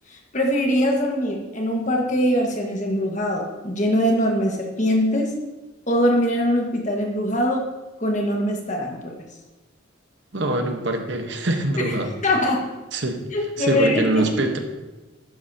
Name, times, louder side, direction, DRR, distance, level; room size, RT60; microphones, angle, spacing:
voice 1, 0.1-5.3 5.9-7.7 8.0-9.1 11.8-11.9 12.2-12.7 13.3-14.3, equal, 35° left, 1 dB, 1.6 m, -22 dB
voice 2, 10.3-12.1 12.9-13.2 13.6-14.6, right 2 dB, 60° right, 4 dB, 1.2 m, -24 dB
12.0 x 10.5 x 2.9 m, 1.1 s
head